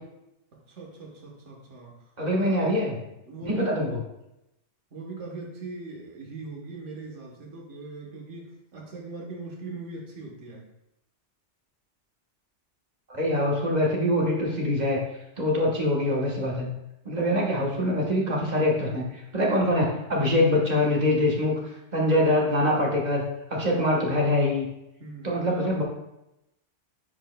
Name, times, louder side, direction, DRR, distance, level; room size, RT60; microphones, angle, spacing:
voice 1, 0.5-1.9 2.3-2.7 3.3-4.0 4.9-10.6 17.1-17.7 25.0-25.7, right 4 dB, 75° right, -1 dB, 1.5 m, -40 dB
voice 2, 2.2-3.0 3.5-4.0 13.1-15.0 15.4-16.7 17.0-21.5 21.9-23.2 23.5-24.6 25.2-25.8, left 1 dB, 35° right, -2 dB, 1.3 m, -24 dB
9.7 x 4.5 x 2.2 m, 0.87 s
omnidirectional pair, 1.2 m